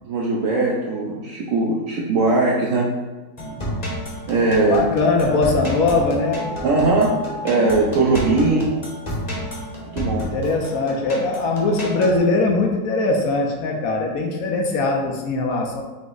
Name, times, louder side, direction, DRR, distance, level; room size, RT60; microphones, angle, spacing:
voice 1, 0.0-2.9 4.3-4.9 6.6-7.2 7.4-8.7 9.9-10.2, right 3 dB, 75° right, -3 dB, 0.7 m, -19 dB
sound 1, 3.4-12.2, equal, 35° left, 0.7 m, -30 dB
voice 2, 4.7-6.5 10.3-15.8, left 3 dB, 75° left, 1 dB, 0.8 m, -21 dB
5.8 x 2.0 x 3.7 m, 1.2 s
omnidirectional pair, 2.0 m